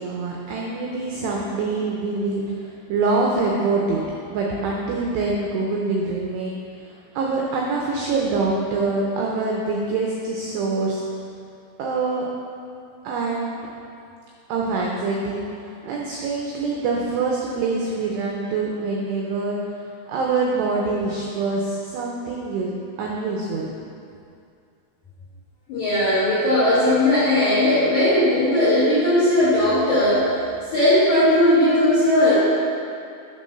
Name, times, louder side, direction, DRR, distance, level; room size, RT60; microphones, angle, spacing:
voice 1, 0.0-4.0 4.3-6.9 7.2-11.0 11.8-12.3 13.0-13.7 14.5-15.4 15.8-19.6 20.1-22.7 23.0-23.7, right 3 dB, 85° right, -2 dB, 2.4 m, -25 dB
voice 2, 25.7-30.3 30.7-32.4, left 1 dB, 70° left, -12 dB, 1.8 m, -18 dB
9.4 x 3.8 x 5.5 m, 2.5 s
omnidirectional pair, 5.6 m